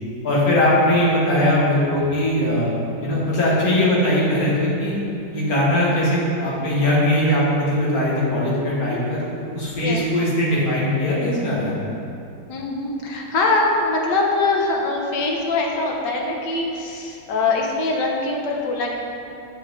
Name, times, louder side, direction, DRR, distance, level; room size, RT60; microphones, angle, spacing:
voice 1, 0.2-5.0 5.3-11.7, left 1 dB, 50° left, -6 dB, 2.0 m, -20 dB
voice 2, 12.5-18.9, left 3 dB, 65° left, 0 dB, 1.5 m, -23 dB
7.6 x 6.3 x 3.8 m, 2.7 s
omnidirectional pair, 2.1 m